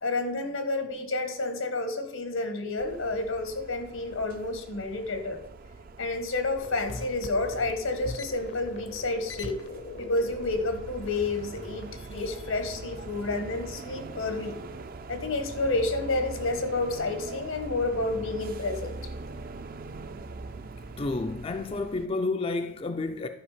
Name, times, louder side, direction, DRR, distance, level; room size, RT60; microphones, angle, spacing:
voice 1, 0.0-5.4 6.0-9.6 10.0-14.6 15.1-19.0, left 2 dB, 85° left, 1.4 m, -30 dB
sound 1, 2.8-22.1, right 3 dB, 45° right, 0.4 m, -42 dB
sound 2, 6.5-12.0, left 3 dB, 60° left, 0.7 m, -41 dB
voice 2, 21.0-23.3, left 3 dB, 25° left, 0.3 m, -30 dB
11.0 x 5.0 x 5.0 m
head